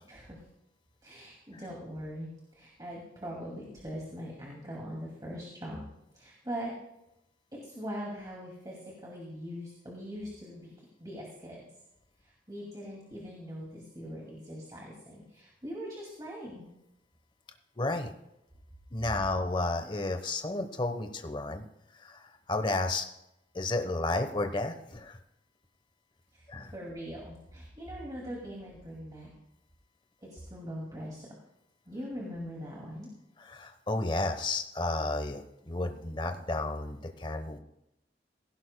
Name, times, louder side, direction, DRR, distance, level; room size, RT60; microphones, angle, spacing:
voice 1, 1.0-5.8 6.1-6.7 7.6-10.7 11.0-11.6 12.5-16.7 26.7-29.3 30.2-31.3 31.9-33.1, equal, 20° right, -3 dB, 2.4 m, -41 dB
voice 2, 17.8-18.1 18.9-21.6 22.0-23.0 23.5-25.2 26.5-26.7 33.4-37.6, left 2 dB, 25° left, 6 dB, 1.0 m, -32 dB
17.5 x 16.0 x 2.2 m, 0.85 s
head